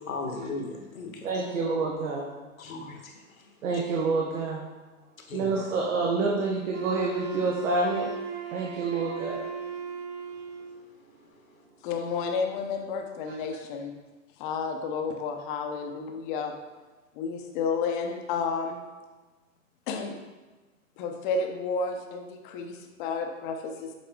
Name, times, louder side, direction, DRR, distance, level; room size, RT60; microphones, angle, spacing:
voice 1, 0.1-1.2 2.6-3.8 5.2-5.7, left 3 dB, 75° left, 2 dB, 1.3 m, -38 dB
voice 2, 1.2-2.3 3.6-4.7 5.3-8.1 8.5-9.5, right 3 dB, 65° right, -2 dB, 1.1 m, -28 dB
Wind instrument woodwind instrument, 6.7-10.9, right 6 dB, 25° right, 0.4 m, -37 dB
voice 3, 11.8-13.9 14.4-16.5 17.1-18.8 19.9-20.2 21.0-23.9, left 5 dB, 35° left, 4 dB, 0.8 m, -31 dB
7.4 x 4.1 x 3.7 m, 1.2 s
hypercardioid pair, 115°, 42 cm